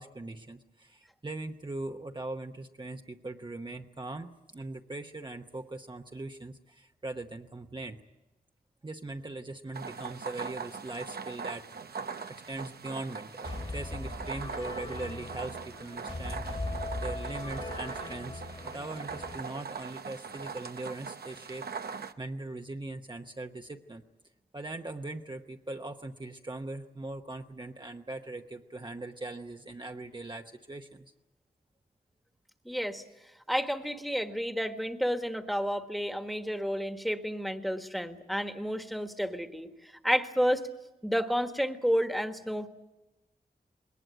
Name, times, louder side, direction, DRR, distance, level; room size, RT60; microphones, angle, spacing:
voice 1, 0.0-8.0 8.8-11.7 12.0-24.0 24.5-31.1, right 2 dB, 30° right, 3 dB, 1.0 m, -41 dB
sound 1, 9.7-22.1, right 5 dB, 85° right, 0.9 m, -41 dB
sound 2, 13.4-19.4, left 2 dB, 35° left, 2.1 m, -39 dB
voice 2, 32.6-33.0 33.5-39.7 40.0-40.6 41.0-42.7, equal, ahead, 7 dB, 1.5 m, -30 dB
21.0 x 19.5 x 9.2 m, 1.0 s
wide cardioid pair, 80°, 16 cm